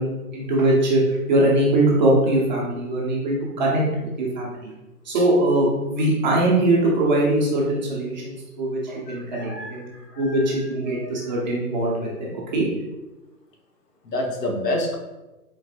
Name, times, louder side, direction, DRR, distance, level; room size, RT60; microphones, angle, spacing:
voice 1, 0.0-3.8 4.2-4.7 5.0-9.9 10.2-12.7, right 1 dB, 30° right, -4 dB, 0.9 m, -21 dB
voice 2, 9.1-10.4 10.9-11.1 14.0-15.0, left 1 dB, 85° left, 1 dB, 1.2 m, -29 dB
4.2 x 3.8 x 2.5 m, 1.0 s
hypercardioid pair, 155°, 47 cm